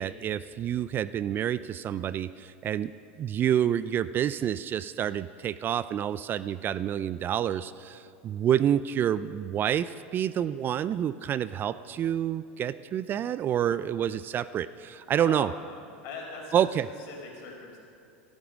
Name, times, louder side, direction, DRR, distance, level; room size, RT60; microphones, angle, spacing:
voice 1, 0.0-2.9 3.2-15.5 16.5-16.9, right 10 dB, 35° right, 16 dB, 0.4 m, -28 dB
voice 2, 15.0-16.7 17.1-17.8, left 4 dB, 55° left, 0 dB, 4.4 m, -41 dB
14.5 x 11.5 x 6.3 m, 2.6 s
hypercardioid pair, 105°, 6 cm